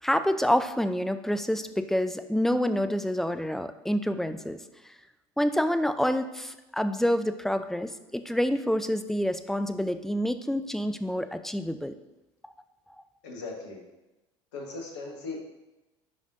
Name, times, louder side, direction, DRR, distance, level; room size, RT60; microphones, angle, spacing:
voice 1, 0.0-4.6 5.4-12.0, equal, ahead, 9 dB, 0.5 m, -27 dB
voice 2, 13.2-13.8 14.5-15.4, left 3 dB, 70° left, 1 dB, 1.3 m, -38 dB
9.4 x 5.1 x 2.6 m, 1.0 s
figure-of-eight pair, 65°, 15 cm